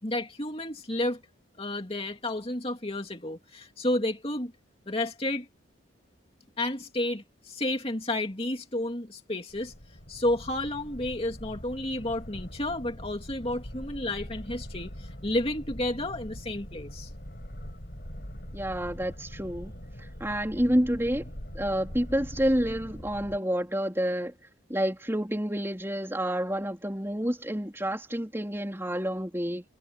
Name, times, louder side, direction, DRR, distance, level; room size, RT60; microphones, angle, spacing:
voice 1, 0.0-1.2 1.6-4.5 4.9-5.5 6.6-9.7 10.1-17.1, left 1 dB, 30° left, 2.8 m, -31 dB
sound 1, 9.5-23.4, equal, 50° left, 7.2 m, -42 dB
voice 2, 18.5-19.7 20.2-21.2 21.5-24.3 24.7-29.6, equal, 10° right, 3.9 m, -29 dB
head